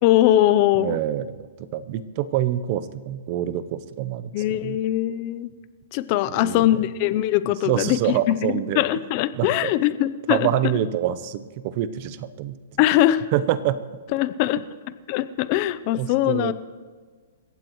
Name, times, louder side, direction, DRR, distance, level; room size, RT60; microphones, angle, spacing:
voice 1, 0.0-1.0 4.3-5.5 5.9-10.5 12.8-13.2 14.1-14.6 15.1-16.5, left 13 dB, 35° left, 15 dB, 0.6 m, -21 dB
voice 2, 0.8-4.8 6.4-6.7 7.6-8.8 9.3-9.7 10.3-12.6 13.3-14.0 16.0-16.5, right 11 dB, 35° right, 14 dB, 0.8 m, -26 dB
29.0 x 15.5 x 3.1 m, 1.5 s
hypercardioid pair, 160°, 0 cm